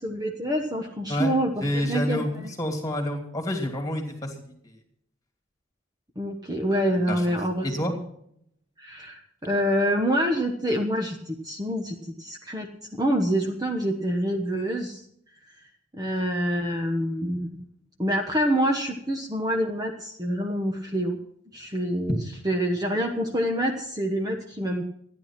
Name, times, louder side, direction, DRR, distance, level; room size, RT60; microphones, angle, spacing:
voice 1, 0.0-2.5 6.2-8.0 8.8-15.0 15.9-17.5 18.0-21.2 21.5-24.8, equal, 20° right, 2 dB, 1.2 m, -27 dB
voice 2, 1.6-4.3 4.6-4.7 7.1-7.3 7.6-7.9, left 1 dB, 15° left, 3 dB, 2.8 m, -28 dB
14.5 x 10.5 x 6.0 m, 0.70 s
head